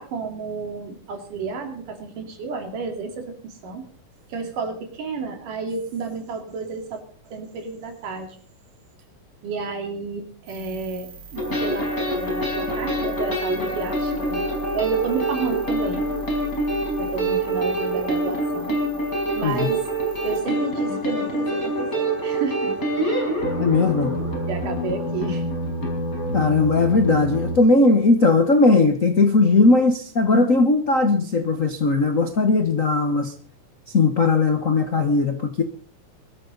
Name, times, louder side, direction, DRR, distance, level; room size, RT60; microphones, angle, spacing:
voice 1, 0.0-3.9 4.3-8.4 9.4-16.0 17.0-18.8 19.3-19.8 20.2-22.7 23.0-23.4 24.5-25.4, right 4 dB, 80° right, 4 dB, 4.2 m, -31 dB
sound 1, 10.5-20.4, right 3 dB, 50° right, 5.8 m, -41 dB
sound 2, 11.4-27.6, right 1 dB, 25° left, 5.1 m, -26 dB
voice 2, 23.6-24.2 26.3-33.3 33.9-35.6, left 3 dB, 75° left, 7 dB, 0.7 m, -18 dB
22.0 x 13.5 x 4.0 m, 0.44 s
omnidirectional pair, 3.7 m